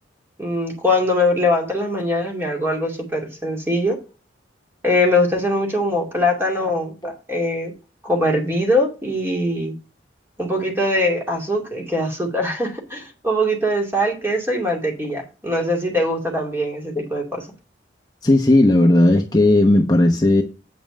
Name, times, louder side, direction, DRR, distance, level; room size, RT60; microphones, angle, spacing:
voice 1, 0.4-4.0 4.8-6.9 7.3-7.7 8.0-9.7 10.4-17.5, left 1 dB, 10° right, 2.5 m, -22 dB
voice 2, 18.2-20.4, left 1 dB, 20° left, 0.9 m, -15 dB
8.8 x 5.5 x 5.4 m
head